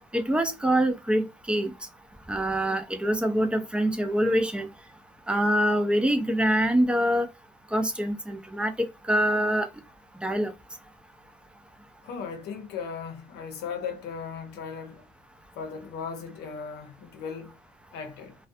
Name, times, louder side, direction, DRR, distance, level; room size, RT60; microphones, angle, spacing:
voice 1, 0.1-1.7 2.3-4.7 5.3-7.3 7.7-9.7 10.2-10.5, equal, 5° right, 0.4 m, -25 dB
voice 2, 12.0-15.0 15.5-17.6 17.9-18.3, left 6 dB, 80° left, 0.7 m, -37 dB
2.3 x 2.2 x 2.6 m
cardioid pair, 110°, 17 cm